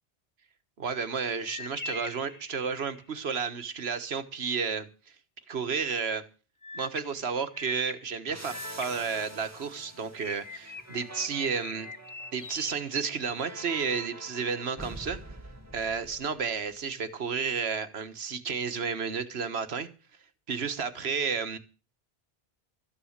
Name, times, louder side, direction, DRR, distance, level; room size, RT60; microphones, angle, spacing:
voice 1, 0.8-4.9 5.5-6.2 6.7-11.9 12.3-15.2 15.7-19.9 20.5-21.6, right 5 dB, 85° right, 1.5 m, -32 dB
sound 1, 1.4-3.1 6.6-9.8 10.2-13.6, left 3 dB, 20° left, 0.7 m, -44 dB
sound 2, 8.3-16.7, right 1 dB, 15° right, 1.9 m, -46 dB
13.5 x 10.0 x 6.5 m
omnidirectional pair, 1.0 m